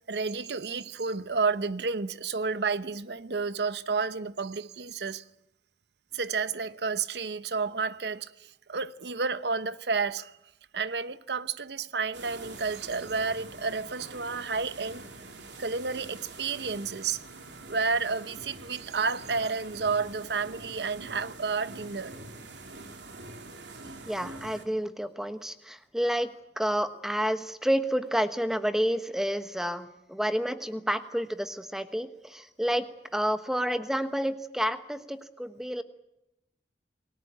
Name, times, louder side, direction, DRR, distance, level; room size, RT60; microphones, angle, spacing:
voice 1, 0.1-5.2 6.1-10.4 10.7-15.1 15.6-17.2 17.7-22.1, right 4 dB, 70° right, 0.9 m, -31 dB
sound 1, 12.1-24.6, right 3 dB, 90° right, 3.0 m, -45 dB
voice 2, 24.1-26.3 26.6-32.8 33.1-35.8, equal, 5° right, 1.2 m, -29 dB
28.5 x 19.5 x 8.9 m
head